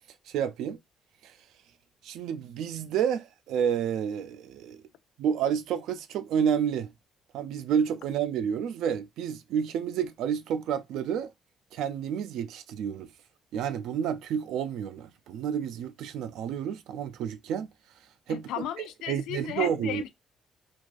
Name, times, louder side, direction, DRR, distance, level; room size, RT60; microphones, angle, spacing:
voice 1, 0.3-0.8 1.2-1.3 2.0-4.8 5.2-6.9 7.3-11.3 11.7-13.1 13.5-17.7 18.3-18.7 19.1-20.0, right 8 dB, 80° right, 0.3 m, -30 dB
voice 2, 18.3-20.1, left 11 dB, 90° left, 0.3 m, -35 dB
2.4 x 2.3 x 2.4 m
cardioid pair, 115°, 0 cm